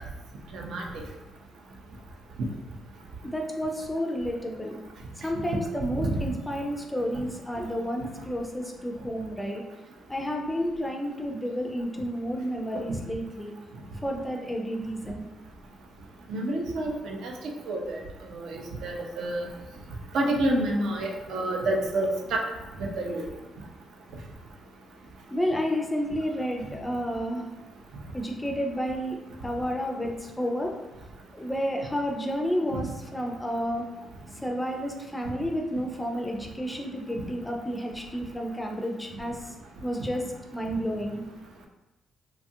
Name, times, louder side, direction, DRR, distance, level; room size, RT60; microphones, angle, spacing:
voice 1, 0.5-0.9 6.0-6.1 16.3-17.3 17.7-18.0 18.3-19.5 20.1-22.4 22.8-23.2, right 1 dB, 75° right, 1 dB, 0.5 m, -28 dB
voice 2, 3.3-4.8 5.2-9.6 10.1-13.5 14.0-15.2 25.3-27.5 28.1-29.2 29.4-30.7 31.3-33.9 34.4-39.4 39.8-40.2 40.5-41.2, equal, 10° left, 1 dB, 0.3 m, -31 dB
2.8 x 2.3 x 2.6 m, 1.0 s
cardioid pair, 90°, 0 cm